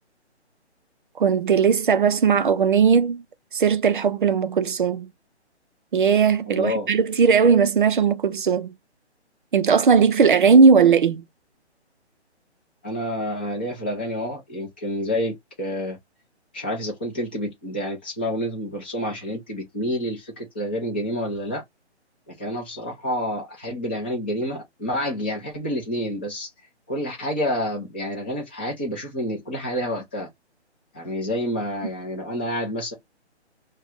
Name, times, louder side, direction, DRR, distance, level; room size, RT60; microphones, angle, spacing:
voice 1, 1.2-3.2 3.5-5.1 5.9-8.7 9.5-11.2, right 6 dB, 50° right, 0.5 m, -18 dB
voice 2, 6.5-6.9 12.8-16.0 16.5-21.6 22.3-26.5 26.9-30.3 30.9-32.9, equal, 10° left, 0.5 m, -28 dB
2.5 x 2.2 x 3.6 m
hypercardioid pair, 155°, 35 cm